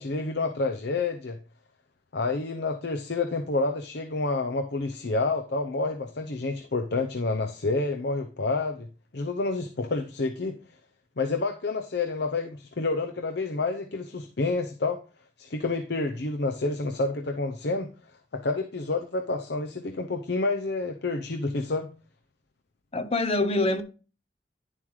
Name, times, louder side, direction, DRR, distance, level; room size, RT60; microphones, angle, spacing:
voice 1, 0.0-1.4 2.1-8.9 9.1-10.6 11.2-15.0 15.4-17.9 18.3-21.9, left 3 dB, 60° left, 0.7 m, -29 dB
voice 2, 22.9-23.8, left 2 dB, 35° left, 0.8 m, -25 dB
10.5 x 7.3 x 3.2 m
head